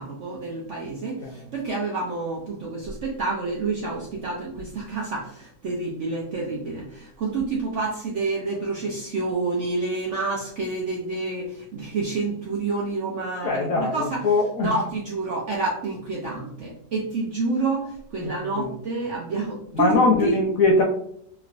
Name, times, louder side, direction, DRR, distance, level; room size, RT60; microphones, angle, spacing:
voice 1, 0.0-14.2 14.6-20.4, right 3 dB, 65° right, -3 dB, 0.7 m, -28 dB
voice 2, 13.4-14.7 18.2-18.7 19.7-20.8, left 3 dB, 70° left, -1 dB, 0.8 m, -22 dB
3.3 x 3.0 x 2.4 m, 0.68 s
omnidirectional pair, 1.9 m